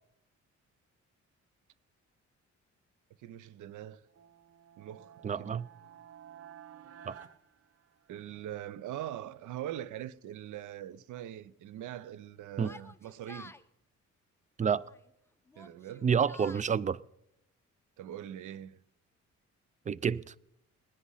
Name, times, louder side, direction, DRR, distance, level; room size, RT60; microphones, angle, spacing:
voice 1, 3.2-4.1 4.8-5.6 8.1-13.5 15.6-16.1 18.0-18.8, right 11 dB, 80° right, 0.7 m, -42 dB
sound 1, 4.1-8.4, right 9 dB, 50° right, 1.0 m, -53 dB
voice 2, 5.2-5.7 7.1-7.2 12.6-12.7 14.6-14.8 16.0-17.0 19.9-20.3, right 7 dB, 25° right, 0.4 m, -29 dB
Yell, 12.6-13.6 14.7-15.1 15.5-16.7, left 2 dB, 10° left, 0.7 m, -51 dB
19.5 x 10.0 x 5.6 m
cardioid pair, 90°, 30 cm